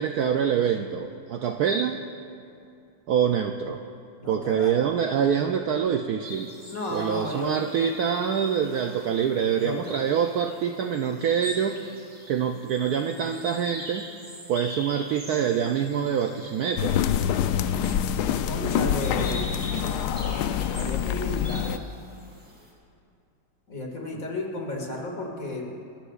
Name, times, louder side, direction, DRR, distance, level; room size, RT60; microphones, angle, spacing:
voice 1, 0.0-2.0 3.1-3.8 4.3-6.5 6.9-11.8 12.3-14.1 14.5-17.0 24.1-24.2, right 8 dB, 70° right, 5 dB, 0.9 m, -25 dB
voice 2, 4.2-4.7 6.7-7.5 9.6-9.9 18.4-19.4 20.7-21.8 23.7-25.7, left 1 dB, 45° left, -1 dB, 2.4 m, -33 dB
sound 1, 6.2-22.7, equal, 15° right, 2.9 m, -44 dB
sound 2, 16.8-21.8, left 9 dB, 70° left, 1.0 m, -26 dB
29.0 x 14.5 x 2.4 m, 2.5 s
omnidirectional pair, 2.1 m